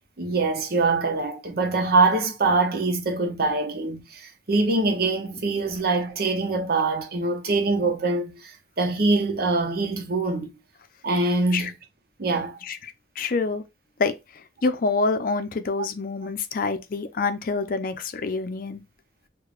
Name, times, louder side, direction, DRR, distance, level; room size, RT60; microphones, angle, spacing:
voice 1, 0.2-10.5 11.0-11.7 12.2-12.6, right 3 dB, 60° right, 0.8 m, -24 dB
voice 2, 12.6-13.6 14.0-14.1 14.6-18.8, left 4 dB, 55° left, 0.5 m, -26 dB
6.5 x 2.2 x 2.4 m
head